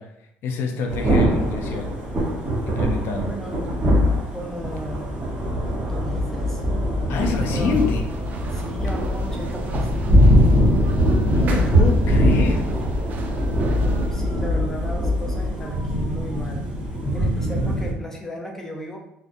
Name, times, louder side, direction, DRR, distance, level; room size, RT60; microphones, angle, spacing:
voice 1, 0.0-1.9 2.7-3.3 7.1-8.0 11.3-12.7, left 5 dB, 65° left, 4 dB, 0.4 m, -27 dB
Thunder / Rain, 0.9-17.9, equal, 20° right, 0.9 m, -21 dB
voice 2, 3.2-3.6 4.3-5.3 5.8-6.6 7.5-7.7 8.5-10.1 14.1-16.7 17.1-19.0, equal, 10° left, -1 dB, 0.5 m, -36 dB
sound 1, 7.1-14.1, right 4 dB, 45° right, 0.3 m, -39 dB
2.3 x 2.2 x 2.5 m, 0.78 s
cardioid pair, 110°, 4 cm